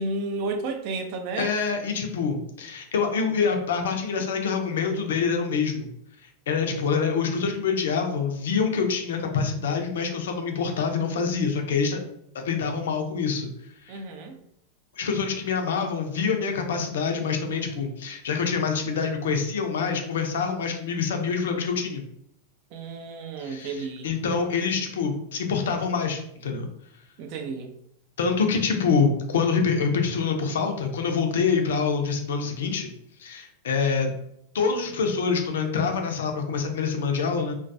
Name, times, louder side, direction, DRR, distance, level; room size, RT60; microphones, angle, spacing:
voice 1, 0.0-1.5 13.9-14.4 22.7-24.1 27.2-27.7, right 3 dB, 45° right, 5 dB, 0.4 m, -32 dB
voice 2, 1.4-5.9 6.5-12.0 12.4-13.5 13.8-14.0 15.0-22.0 23.4-26.7 28.2-32.9 33.2-34.1 34.5-37.5, left 5 dB, 60° left, 4 dB, 0.4 m, -26 dB
2.2 x 2.2 x 2.5 m, 0.74 s
figure-of-eight pair, 90°, 0 cm